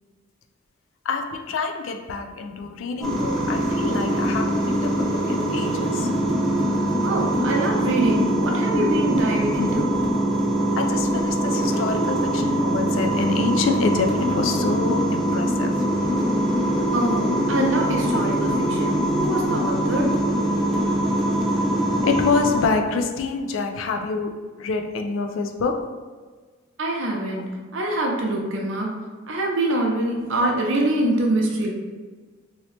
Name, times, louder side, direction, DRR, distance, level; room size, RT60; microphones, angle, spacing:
voice 1, 1.1-6.1 10.8-16.1 16.7-16.9 22.0-25.9, left 4 dB, 70° left, 5 dB, 0.4 m, -27 dB
sound 1, 3.0-22.7, right 1 dB, ahead, 0.7 m, -23 dB
voice 2, 7.0-10.0 16.9-20.1 26.8-27.4 27.7-29.0 29.3-31.7, right 1 dB, 70° right, 0 dB, 0.6 m, -24 dB
2.9 x 2.8 x 3.2 m, 1.4 s
head